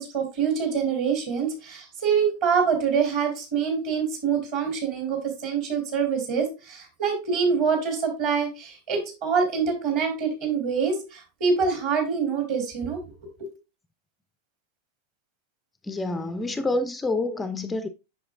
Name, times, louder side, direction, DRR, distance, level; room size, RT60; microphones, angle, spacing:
voice 1, 0.0-13.5, right 6 dB, 45° right, 2.8 m, -25 dB
voice 2, 15.8-17.9, left 2 dB, 10° left, 0.4 m, -27 dB
7.8 x 6.2 x 2.4 m
figure-of-eight pair, 90°, 0 cm